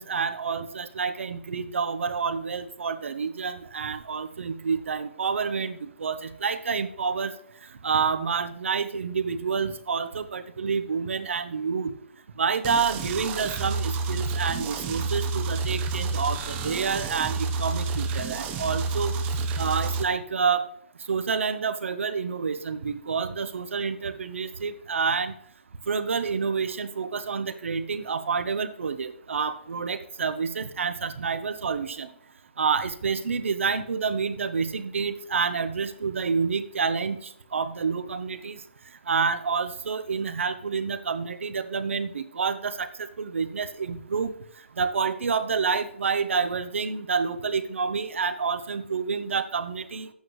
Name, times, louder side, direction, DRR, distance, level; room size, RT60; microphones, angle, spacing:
voice 1, 0.0-7.3 7.8-11.9 12.4-19.2 19.6-20.7 21.1-25.3 25.9-32.1 32.6-38.6 39.1-44.3 44.8-50.1, right 5 dB, 80° right, 10 dB, 0.8 m, -28 dB
sound 1, 12.6-20.0, right 4 dB, 15° right, 0.6 m, -29 dB
11.0 x 8.4 x 3.1 m, 0.67 s
hypercardioid pair, 165°, 7 cm